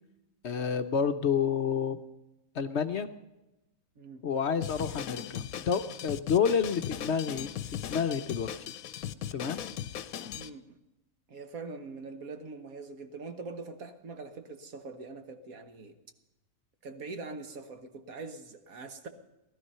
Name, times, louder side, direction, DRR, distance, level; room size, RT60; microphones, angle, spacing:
voice 1, 0.4-2.0 2.5-3.1 4.2-7.5 7.9-8.5 9.3-9.6, left 7 dB, 55° left, 9 dB, 0.9 m, -29 dB
voice 2, 4.0-4.3 10.3-10.8 11.3-15.9 16.8-19.1, right 3 dB, 70° right, 7 dB, 1.7 m, -43 dB
Drum kit, 4.6-10.5, left 10 dB, 75° left, 1.1 m, -38 dB
18.0 x 12.5 x 5.6 m, 0.98 s
omnidirectional pair, 1.5 m